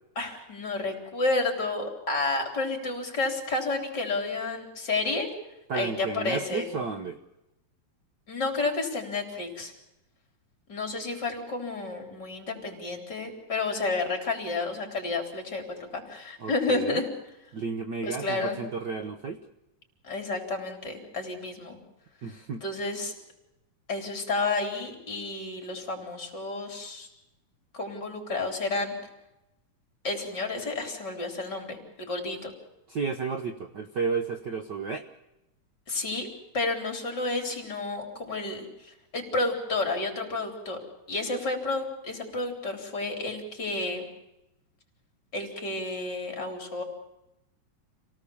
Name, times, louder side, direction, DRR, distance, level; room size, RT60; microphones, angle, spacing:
voice 1, 0.2-5.3 5.7-6.7 8.3-9.7 10.7-17.1 18.0-18.6 20.0-21.8 22.6-23.1 23.9-27.1 27.7-28.9 30.0-32.5 35.9-36.3 36.5-40.8 41.1-44.0 45.3-46.8, left 3 dB, 30° left, 3 dB, 4.3 m, -31 dB
voice 2, 5.7-7.2 16.4-17.0 17.5-19.4 22.2-22.6 32.9-35.0, right 5 dB, 75° right, 6 dB, 1.0 m, -32 dB
28.0 x 18.0 x 7.1 m, 0.90 s
omnidirectional pair, 3.7 m